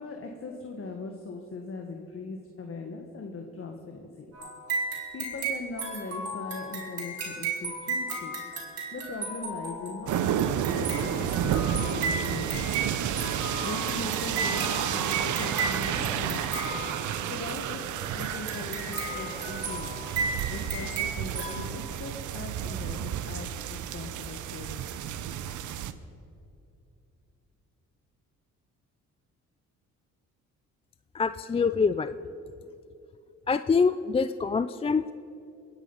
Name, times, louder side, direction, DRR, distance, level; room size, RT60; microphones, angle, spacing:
voice 1, 0.0-4.3 5.1-8.4 8.9-12.6 13.6-16.6 17.3-19.9 20.5-24.9, left 3 dB, 45° left, 3 dB, 1.6 m, -40 dB
sound 1, 4.3-17.4 18.2-21.5, right 3 dB, 55° right, 3.7 m, -34 dB
sound 2, 10.1-25.9, right 10 dB, 75° right, 0.8 m, -31 dB
sound 3, 11.0-21.0, right 2 dB, 35° right, 2.7 m, -48 dB
voice 2, 31.1-32.1 33.5-35.1, left 5 dB, 20° left, 13 dB, 0.4 m, -25 dB
22.5 x 9.9 x 5.5 m, 2.6 s
cardioid pair, 90°, 30 cm